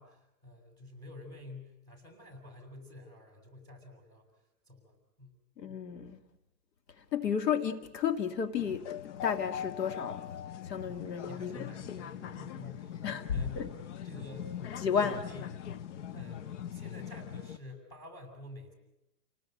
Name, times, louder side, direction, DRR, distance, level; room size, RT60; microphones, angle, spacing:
voice 1, 0.0-5.4 11.2-13.7 14.0-15.5 16.1-18.7, left 2 dB, 10° left, 6.8 m, -49 dB
voice 2, 5.6-6.2 7.0-10.3 10.6-11.7 13.0-13.7 14.8-15.2, left 7 dB, 90° left, 2.3 m, -32 dB
sound 1, 8.6-17.6, left 10 dB, 50° left, 0.8 m, -41 dB
29.5 x 19.5 x 7.9 m
hypercardioid pair, 155°, 48 cm